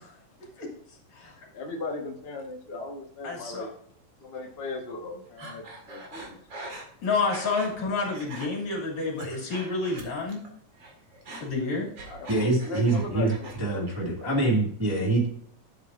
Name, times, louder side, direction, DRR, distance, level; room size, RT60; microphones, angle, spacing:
voice 1, 1.4-3.7 4.2-6.4 12.0-14.4, left 3 dB, 40° left, 0 dB, 0.8 m, -38 dB
voice 2, 3.2-3.7 7.0-10.4 11.4-11.9, left 4 dB, 65° left, -1 dB, 3.9 m, -29 dB
Breathing, 5.4-7.8 8.0-8.5 8.9-10.5 10.7-13.6 13.9-14.5, right 1 dB, 40° right, 2.6 m, -43 dB
voice 3, 12.3-15.3, right 2 dB, 10° right, -3 dB, 1.6 m, -25 dB
11.5 x 8.0 x 2.6 m, 0.63 s
omnidirectional pair, 3.5 m